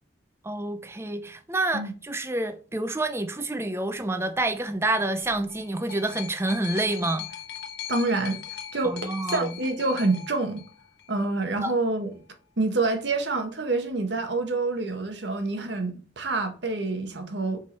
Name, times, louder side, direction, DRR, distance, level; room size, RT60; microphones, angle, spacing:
voice 1, 0.4-7.2 8.8-9.5 11.6-11.7, right 2 dB, 15° right, 0.5 m, -28 dB
sound 1, 5.2-11.2 12.1-12.2, left 9 dB, 55° left, 1.0 m, -40 dB
voice 2, 7.9-8.4 8.7-10.6 11.1-12.1 12.6-17.6, right 3 dB, 65° right, 1.1 m, -27 dB
5.3 x 4.7 x 4.2 m
head